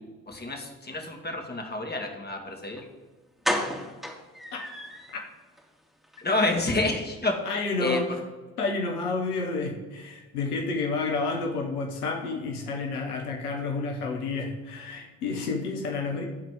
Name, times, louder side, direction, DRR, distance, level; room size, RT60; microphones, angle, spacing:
voice 1, 0.3-2.8 6.2-7.5 7.8-8.0, left 2 dB, 20° left, 1 dB, 2.2 m, -28 dB
sound 1, 2.8-2.9 3.4-5.2 5.6-5.7 6.0-6.2 6.4-6.5, equal, ahead, 2.3 m, -31 dB
voice 2, 7.4-8.2 8.6-16.2, left 3 dB, 80° left, 1 dB, 1.1 m, -30 dB
12.0 x 4.1 x 7.7 m, 1.3 s
figure-of-eight pair, 45°, 45 cm